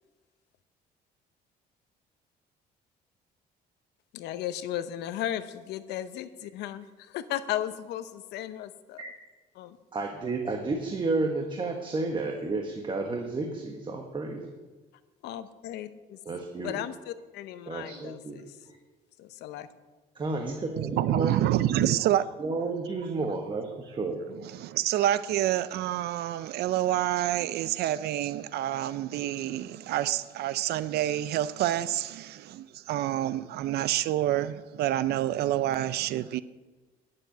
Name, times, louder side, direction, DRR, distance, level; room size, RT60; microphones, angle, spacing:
voice 1, 4.1-9.0 9.6-9.8 15.2-16.2 16.6-18.6 19.2-19.7, left 12 dB, 85° left, 0.9 m, -35 dB
voice 2, 9.9-14.5 16.2-16.8 17.7-18.4 18.7-18.8 20.1-21.8 22.4-24.2, right 3 dB, 30° right, 1.4 m, -32 dB
voice 3, 20.8-22.3 24.4-36.4, right 13 dB, 70° right, 0.5 m, -28 dB
10.0 x 7.7 x 9.2 m
cardioid pair, 110°, 17 cm